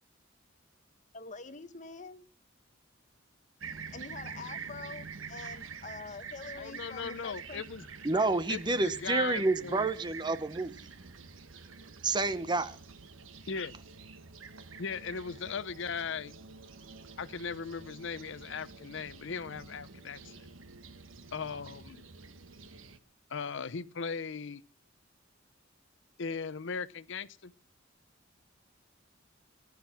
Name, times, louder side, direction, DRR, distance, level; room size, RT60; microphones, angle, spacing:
voice 1, 1.1-2.3 3.9-7.6, left 4 dB, 40° left, 1.0 m, -45 dB
Fixed-wing aircraft airplane, 3.6-23.0, right 5 dB, 90° right, 1.2 m, -47 dB
voice 2, 6.6-7.8 8.5-9.9 13.5-13.7 14.8-16.4 17.2-20.5 21.3-22.0 23.3-24.6 26.2-27.5, left 5 dB, 65° left, 0.6 m, -38 dB
voice 3, 8.0-10.7 12.0-12.8, right 3 dB, 25° right, 0.8 m, -29 dB
18.5 x 11.0 x 5.8 m
head